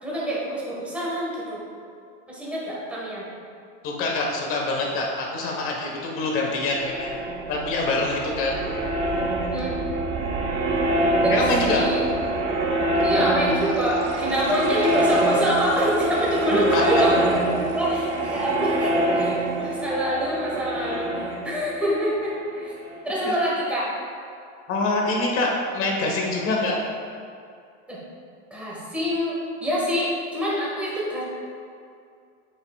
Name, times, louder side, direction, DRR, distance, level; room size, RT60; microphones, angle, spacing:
voice 1, 0.0-1.6 2.3-3.2 9.4-9.8 11.2-11.4 11.7-12.1 13.0-22.7 23.0-23.9 27.9-28.0 28.5-31.2, equal, 5° right, -7 dB, 1.5 m, -26 dB
voice 2, 3.8-7.1 7.5-8.8 11.3-11.8 16.7-16.8 23.2-23.3 24.7-26.8, left 2 dB, 35° left, -1 dB, 1.3 m, -25 dB
sound 1, 6.4-23.1, right 1 dB, 30° right, 0.9 m, -25 dB
7.9 x 7.3 x 2.4 m, 2.4 s
supercardioid pair, 150°, 37 cm